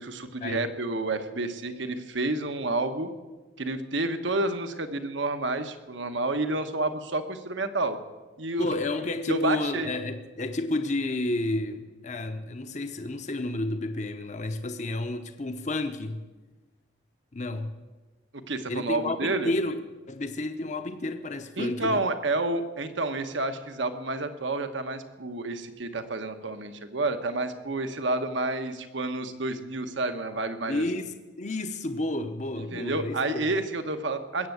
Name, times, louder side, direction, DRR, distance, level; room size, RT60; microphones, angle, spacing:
voice 1, 0.0-3.1 3.6-8.0 8.4-8.7 9.3-9.9 18.5-19.5 21.6-30.8 32.6-34.5, right 2 dB, 70° right, 9 dB, 1.2 m, -29 dB
voice 2, 8.6-16.2 17.3-17.7 18.7-19.8 20.1-22.0 30.7-33.4, left 2 dB, 35° left, 8 dB, 0.8 m, -31 dB
20.5 x 8.2 x 8.0 m, 1.2 s
head